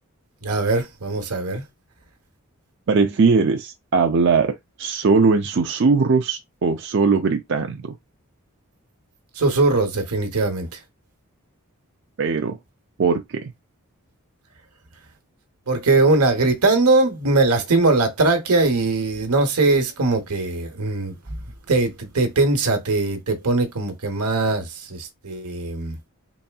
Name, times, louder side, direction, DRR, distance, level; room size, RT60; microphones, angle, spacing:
voice 1, 0.4-1.6 9.4-10.7 15.7-21.4 21.7-26.0, right 3 dB, 85° right, 1.1 m, -20 dB
voice 2, 2.9-7.9 12.2-12.6 13.0-13.5, right 4 dB, 55° right, 0.4 m, -20 dB
4.1 x 3.4 x 2.3 m
head